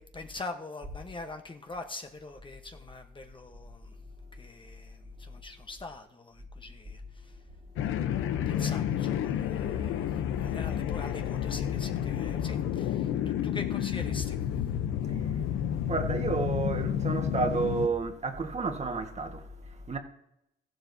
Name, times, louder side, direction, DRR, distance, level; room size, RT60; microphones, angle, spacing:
voice 1, 0.0-4.0 4.3-7.4 8.5-14.4, left 3 dB, 25° left, 1.0 m, -43 dB
sound 1, 7.8-17.9, left 10 dB, 90° left, 0.7 m, -30 dB
voice 2, 15.1-15.5 15.9-20.0, right 4 dB, 35° right, 1.5 m, -31 dB
14.5 x 12.0 x 2.7 m
cardioid pair, 90°, 20 cm